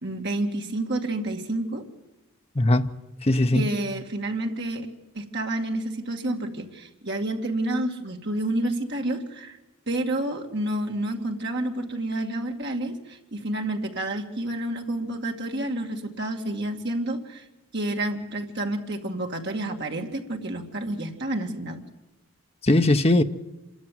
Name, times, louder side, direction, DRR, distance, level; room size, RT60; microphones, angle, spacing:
voice 1, 0.0-1.8 3.5-4.9 5.1-9.6 9.9-17.5 17.7-21.8, right 1 dB, 50° right, 2.3 m, -29 dB
voice 2, 2.5-3.0 3.2-3.7 22.6-23.2, left 1 dB, 25° left, 0.8 m, -20 dB
26.5 x 13.5 x 9.4 m
head